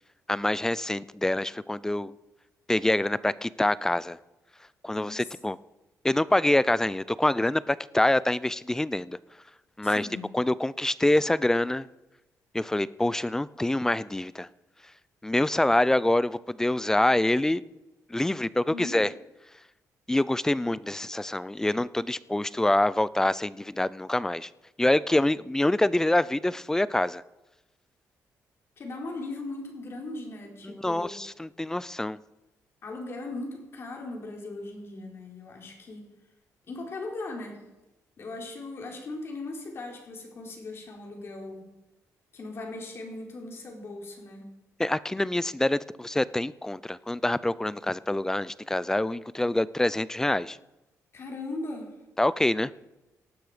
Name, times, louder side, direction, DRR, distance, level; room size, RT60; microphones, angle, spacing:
voice 1, 0.3-2.1 2.7-4.2 4.8-5.6 6.0-9.2 9.8-10.1 10.3-11.9 12.5-14.5 15.2-17.6 18.1-19.1 20.1-24.5 24.8-27.2 30.7-32.2 44.8-50.6 52.2-52.7, left 1 dB, 10° left, 19 dB, 0.5 m, -26 dB
voice 2, 4.9-5.3 9.8-10.3 18.5-19.0 28.8-31.2 32.8-36.1 36.7-37.7 38.2-41.7 42.3-44.5 51.1-51.9, left 2 dB, 45° left, 1 dB, 4.3 m, -38 dB
18.5 x 12.5 x 5.1 m, 1.0 s
cardioid pair, 130°, 6 cm